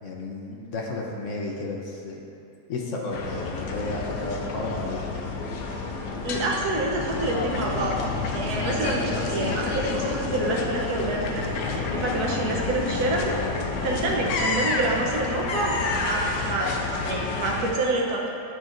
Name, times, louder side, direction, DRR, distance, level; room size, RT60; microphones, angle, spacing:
voice 1, 0.0-2.2 2.7-5.1, left 2 dB, 60° left, -1 dB, 0.9 m, -32 dB
sound 1, 3.1-17.7, left 3 dB, 85° left, 1.2 m, -29 dB
voice 2, 6.2-11.6 11.9-13.4 13.8-16.7 17.0-18.3, right 2 dB, 70° right, -1 dB, 1.3 m, -27 dB
9.0 x 5.5 x 2.5 m, 2.7 s
omnidirectional pair, 1.8 m